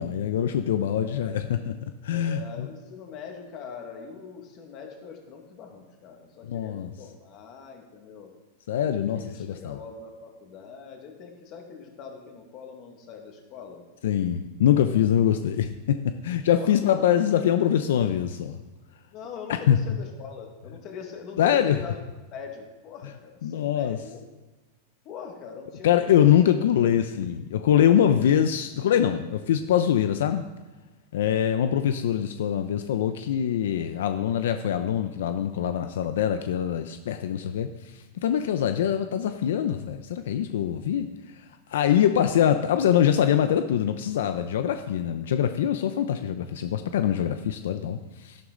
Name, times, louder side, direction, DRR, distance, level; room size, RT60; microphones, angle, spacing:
voice 1, 0.0-2.7 6.4-6.9 8.7-9.8 14.0-18.6 19.5-19.8 21.4-21.8 23.4-24.0 25.8-30.4 31.1-41.1 41.7-48.4, left 10 dB, 70° left, 9 dB, 0.6 m, -24 dB
voice 2, 0.9-1.3 2.1-8.3 8.9-13.8 14.9-15.1 16.5-17.0 19.1-22.0 22.3-24.2 25.1-26.4, left 6 dB, 30° left, 2 dB, 1.9 m, -42 dB
13.0 x 11.5 x 3.9 m, 1.2 s
supercardioid pair, 175°, 0 cm